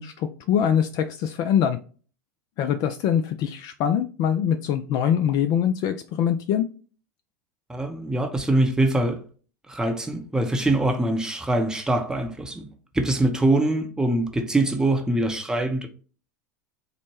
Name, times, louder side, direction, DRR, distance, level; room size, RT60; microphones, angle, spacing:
voice 1, 0.0-1.8 2.6-6.7, left 9 dB, 45° left, 0.3 m, -23 dB
voice 2, 7.7-9.2 9.7-12.6 12.9-15.9, right 1 dB, 5° right, 0.6 m, -23 dB
4.2 x 2.1 x 3.1 m
hypercardioid pair, 85°, 9 cm